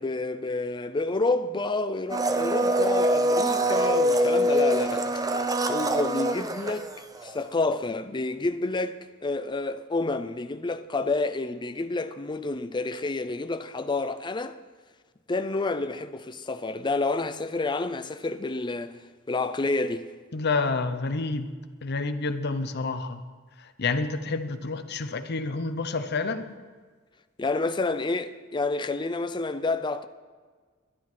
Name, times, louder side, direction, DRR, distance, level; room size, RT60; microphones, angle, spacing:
voice 1, 0.0-5.1 5.7-6.9 7.2-14.6 15.3-19.0 19.3-20.1 27.4-30.1, left 3 dB, 20° left, 0.5 m, -29 dB
Domestic sounds home sounds, 2.1-7.4 7.6-7.7, right 1 dB, 15° right, 0.7 m, -24 dB
voice 2, 20.3-21.5 21.8-23.2 23.6-26.5, left 3 dB, 55° left, 0.8 m, -29 dB
11.5 x 10.0 x 6.0 m
head